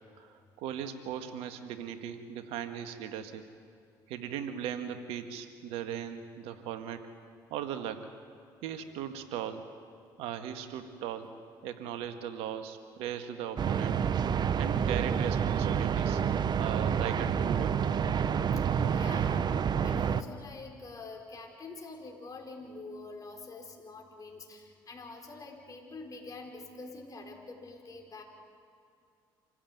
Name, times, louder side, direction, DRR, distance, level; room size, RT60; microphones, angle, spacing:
voice 1, 0.1-3.5 4.1-7.1 7.5-8.1 8.6-9.7 10.2-11.3 11.6-14.0 14.5-16.2 16.5-17.9, right 9 dB, 75° right, 9 dB, 1.7 m, -38 dB
sound 1, 13.6-20.2, right 7 dB, 45° right, 0.9 m, -28 dB
voice 2, 18.8-28.2, left 3 dB, 35° left, 2 dB, 5.0 m, -46 dB
26.5 x 15.5 x 9.3 m, 2.4 s
supercardioid pair, 70°, 10 cm